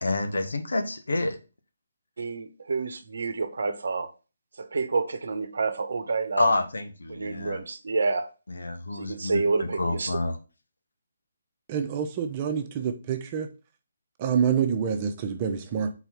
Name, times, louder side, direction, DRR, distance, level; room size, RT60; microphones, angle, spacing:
voice 1, 0.0-1.4 6.4-7.6 8.5-10.4, left 2 dB, 75° left, 1.0 m, -28 dB
voice 2, 2.2-4.1 4.6-6.5 7.1-8.3 8.9-10.2, right 4 dB, 65° right, 0.9 m, -28 dB
voice 3, 11.7-13.5 14.2-15.9, right 7 dB, 30° right, 0.9 m, -27 dB
4.5 x 4.1 x 5.6 m
figure-of-eight pair, 145°, 0 cm